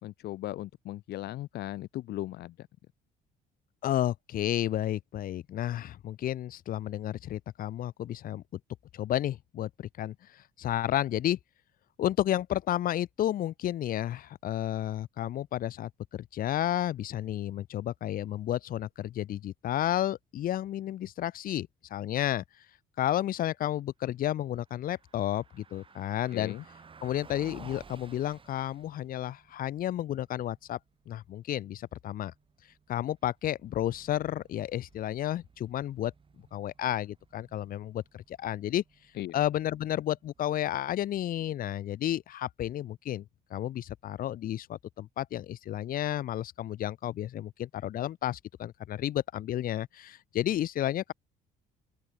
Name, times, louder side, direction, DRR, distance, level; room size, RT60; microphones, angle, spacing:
voice 1, 0.0-2.7 26.3-26.6 39.1-39.4, left 15 dB, 75° left, 2.7 m, -38 dB
voice 2, 3.8-8.6 8.9-11.4 12.0-22.4 23.0-26.5 27.0-30.8 31.1-32.3 32.9-36.1 36.5-38.8 39.3-43.2 43.5-51.1, left 12 dB, 55° left, 1.0 m, -32 dB
Car passing by, 24.6-40.7, right 5 dB, 30° right, 5.5 m, -57 dB
cardioid pair, 110°, 17 cm